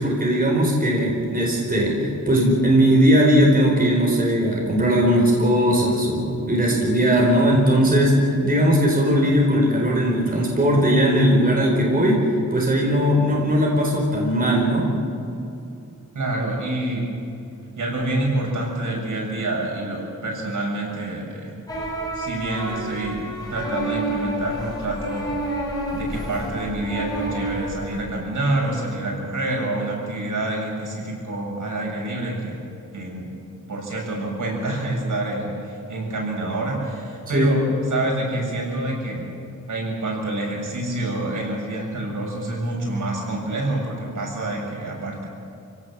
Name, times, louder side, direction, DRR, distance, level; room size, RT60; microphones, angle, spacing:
voice 1, 0.0-14.9 37.3-37.5, equal, 30° right, -2 dB, 4.4 m, -19 dB
voice 2, 16.1-17.2 17.8-21.6 22.1-25.3 25.9-32.6 32.9-33.3 33.7-37.6 37.9-39.3 39.7-45.3, right 2 dB, 75° right, -2 dB, 6.9 m, -27 dB
sound 1, 21.7-28.0, right 1 dB, 10° left, 5.3 m, -29 dB
28.0 x 17.0 x 7.5 m, 2.6 s
wide cardioid pair, 175°, 31 cm